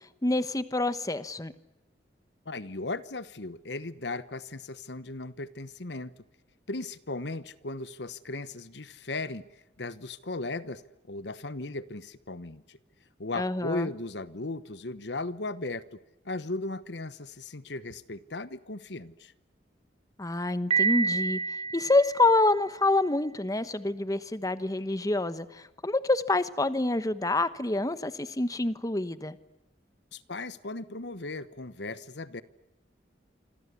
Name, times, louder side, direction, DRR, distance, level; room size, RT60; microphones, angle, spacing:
voice 1, 0.2-1.5 13.4-13.9 20.2-21.4 21.7-29.3, left 2 dB, 20° left, 13 dB, 1.1 m, -27 dB
voice 2, 2.5-6.1 6.7-9.4 9.8-10.8 11.1-12.8 13.2-15.8 16.2-19.3 30.1-32.4, left 2 dB, 70° left, 15 dB, 1.2 m, -36 dB
Piano, 20.7-22.7, right 5 dB, 35° right, 3.3 m, -29 dB
27.0 x 26.0 x 8.4 m, 0.93 s
head